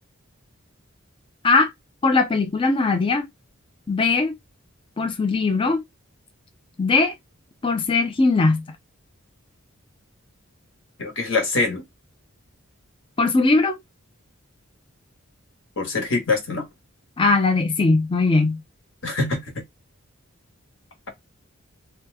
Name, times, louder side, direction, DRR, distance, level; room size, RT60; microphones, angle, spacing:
voice 1, 2.0-3.3 3.9-4.4 5.0-5.8 6.8-7.1 7.6-8.6 13.2-13.8 17.2-18.6, left 3 dB, 25° left, 0.4 m, -20 dB
voice 2, 11.0-11.8 15.8-16.7 19.0-19.4, left 3 dB, 60° left, 1.3 m, -24 dB
3.0 x 2.2 x 3.3 m
head